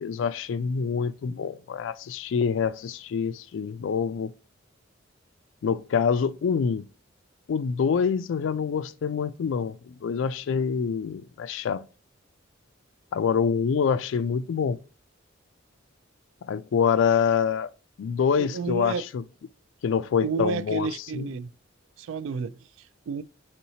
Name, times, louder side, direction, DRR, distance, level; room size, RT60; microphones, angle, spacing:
voice 1, 0.0-4.3 5.6-6.9 7.5-11.8 13.1-14.8 16.5-17.7 18.0-19.2 19.8-20.9 21.1-21.3, left 6 dB, 70° left, 0.3 m, -26 dB
voice 2, 18.4-19.1 20.2-21.5 22.0-23.2, right 5 dB, 75° right, 0.3 m, -31 dB
4.2 x 3.8 x 2.7 m
head